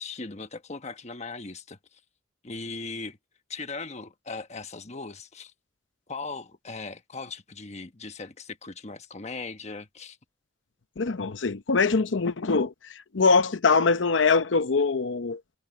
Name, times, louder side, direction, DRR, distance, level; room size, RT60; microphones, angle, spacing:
voice 1, 0.0-2.0 2.4-3.2 3.5-5.5 6.1-10.2, left 3 dB, 35° left, 1.2 m, -38 dB
voice 2, 11.0-12.7 13.1-15.4, left 4 dB, 90° left, 0.8 m, -23 dB
head